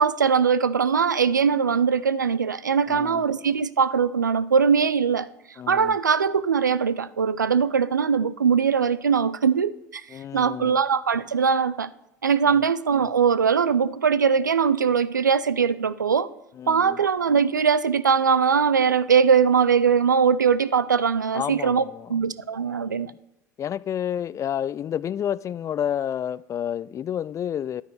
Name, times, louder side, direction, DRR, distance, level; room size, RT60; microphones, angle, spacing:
voice 1, 0.0-5.3 5.7-10.0 10.3-11.9 12.2-16.3 16.7-21.8 22.1-23.1, right 6 dB, 85° right, 17 dB, 0.4 m, -21 dB
voice 2, 2.9-3.2 5.6-6.0 10.1-10.8 12.4-12.6 16.5-17.0 21.3-22.1 22.6-23.2 23.6-27.8, left 9 dB, 30° left, 20 dB, 0.3 m, -30 dB
10.0 x 9.1 x 4.7 m, 0.84 s
figure-of-eight pair, 65°, 10 cm